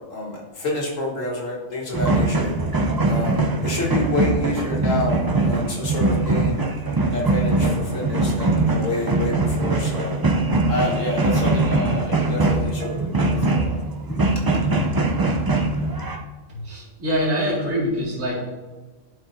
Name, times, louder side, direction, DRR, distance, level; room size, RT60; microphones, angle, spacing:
voice 1, 0.0-2.5 3.1-6.6 7.1-10.2 10.7-13.8 14.2-14.3 14.7-14.8, left 2 dB, 70° left, -3 dB, 1.9 m, -28 dB
sound 1, 1.9-16.2, right 2 dB, 35° right, 0.3 m, -22 dB
voice 2, 16.5-18.4, equal, 75° right, -6 dB, 2.7 m, -24 dB
12.0 x 4.8 x 2.7 m, 1.2 s
omnidirectional pair, 1.4 m